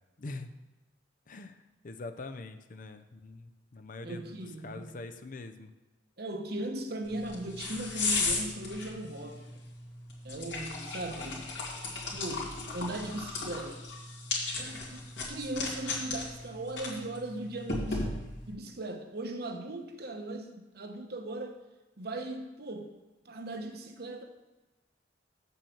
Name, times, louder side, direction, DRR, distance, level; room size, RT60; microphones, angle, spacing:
voice 1, 0.2-0.5 1.3-4.3 4.6-5.7, left 3 dB, 45° left, 8 dB, 0.6 m, -43 dB
voice 2, 4.0-5.0 6.2-9.4 10.2-11.5 12.1-13.8 14.6-21.6 22.0-22.9 23.2-24.2, right 1 dB, 55° right, 5 dB, 1.0 m, -38 dB
sound 1, 7.0-18.5, left 3 dB, 75° left, 2.3 m, -36 dB
7.2 x 5.5 x 7.1 m, 1.1 s
head